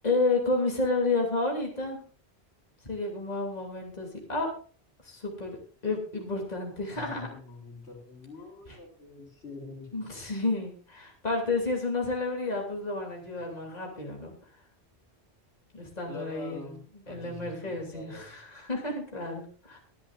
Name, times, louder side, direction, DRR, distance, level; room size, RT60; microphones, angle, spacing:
voice 1, 0.0-2.0 2.8-4.5 5.0-5.6 5.8-7.3 9.9-14.3 15.7-16.8 17.1-19.8, left 3 dB, 40° left, 0 dB, 2.9 m, -31 dB
voice 2, 6.9-9.9 16.1-18.3, left 3 dB, 85° left, 0 dB, 3.7 m, -45 dB
22.5 x 10.5 x 2.5 m, 0.41 s
omnidirectional pair, 1.1 m